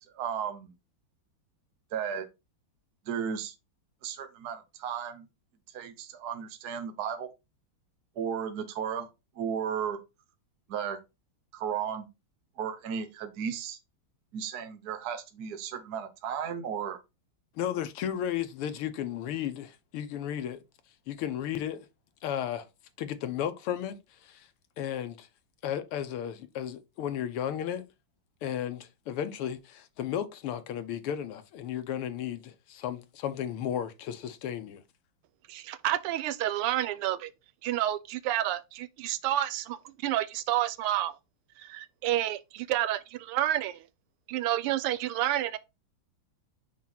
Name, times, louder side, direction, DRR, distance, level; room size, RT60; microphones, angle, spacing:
voice 1, 0.1-0.7 1.9-2.3 3.1-3.5 4.0-5.2 5.7-7.3 8.2-9.1 9.4-10.0 10.7-11.0 11.5-12.1 12.6-13.8 14.3-17.0, right 8 dB, 55° right, 1.3 m, -34 dB
voice 2, 17.6-20.6 21.1-21.9 22.2-22.7 23.0-24.0 24.2-24.5 24.8-25.3 25.6-27.8 28.4-34.8, left 10 dB, 85° left, 1.8 m, -34 dB
voice 3, 35.5-37.3 37.6-41.2 41.6-43.8 44.3-45.6, right 13 dB, 90° right, 1.6 m, -29 dB
6.0 x 4.7 x 4.0 m
omnidirectional pair, 2.4 m